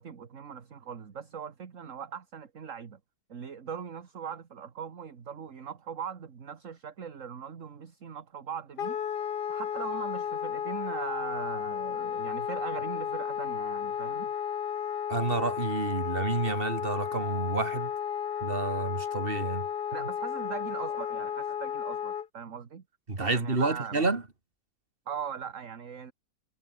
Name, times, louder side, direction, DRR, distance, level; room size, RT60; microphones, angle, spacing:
voice 1, 0.0-3.0 3.3-9.0 9.5-14.3 19.9-22.8 23.2-24.0 25.1-26.1, right 7 dB, 45° right, 1.8 m, -40 dB
Wind instrument woodwind instrument, 8.8-22.3, left 8 dB, 65° left, 1.9 m, -33 dB
voice 2, 15.1-17.9 18.4-19.7 23.1-24.2, right 3 dB, 30° right, 2.9 m, -29 dB
omnidirectional pair, 2.0 m